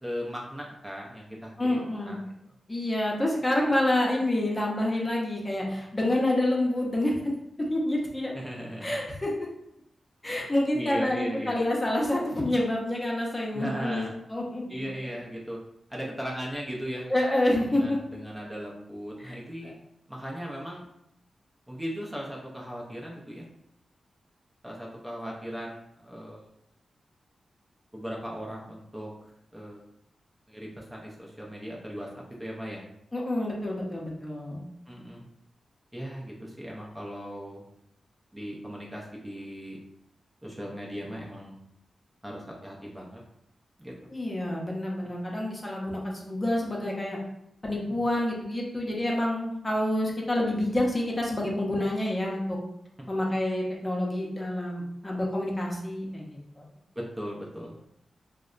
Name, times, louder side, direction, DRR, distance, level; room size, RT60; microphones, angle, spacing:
voice 1, 0.0-2.3 8.3-9.0 10.7-11.6 13.5-14.2 14.7-15.6 15.9-17.1 17.7-19.7 20.1-20.9 21.7-23.5 24.6-26.4 27.9-29.1 29.5-29.8 30.5-32.1 32.4-32.8 34.9-35.2 35.9-37.6 38.3-39.8 40.4-41.6 42.2-43.2 43.8-43.9 53.0-53.1 57.0-57.8, equal, 10° right, -3 dB, 0.5 m, -37 dB
voice 2, 1.6-2.2 2.7-7.3 7.7-8.3 8.8-9.3 10.2-14.0 14.3-14.9 17.1-18.0 19.2-19.4 33.1-34.6 44.1-47.2 47.6-52.6 53.1-56.6, left 1 dB, 25° left, -2 dB, 0.7 m, -28 dB
2.7 x 2.1 x 2.4 m, 0.79 s
cardioid pair, 60°, 0 cm